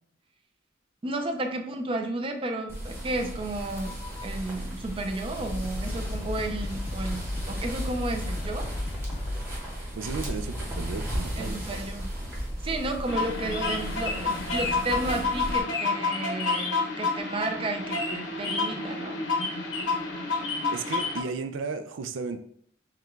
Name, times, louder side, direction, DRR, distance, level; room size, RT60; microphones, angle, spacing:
voice 1, 1.0-8.7 11.4-12.1 12.6-19.2, right 2 dB, 30° right, 4 dB, 0.5 m, -32 dB
sound 1, 2.7-15.6, equal, 15° right, 1.1 m, -35 dB
sound 2, 3.6-4.2 5.0-5.1 5.4-9.6, left 1 dB, 35° left, 0.5 m, -34 dB
voice 2, 10.0-11.6 20.7-22.4, right 4 dB, 85° right, 8 dB, 0.4 m, -34 dB
sound 3, 13.1-21.2, left 3 dB, 85° left, 0.9 m, -29 dB
5.7 x 2.3 x 3.1 m, 0.64 s
head